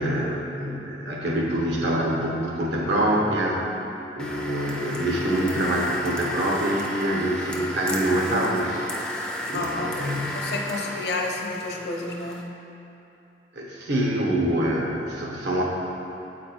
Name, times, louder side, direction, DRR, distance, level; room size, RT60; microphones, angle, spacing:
voice 1, 0.0-3.6 4.1-8.9 9.5-10.3 13.5-15.6, right 1 dB, 75° right, -2 dB, 1.1 m, -25 dB
sound 1, 4.2-12.4, left 1 dB, 5° left, 0.4 m, -33 dB
voice 2, 9.5-12.5, left 2 dB, 65° left, 1 dB, 0.7 m, -31 dB
7.9 x 4.3 x 4.3 m, 2.9 s
head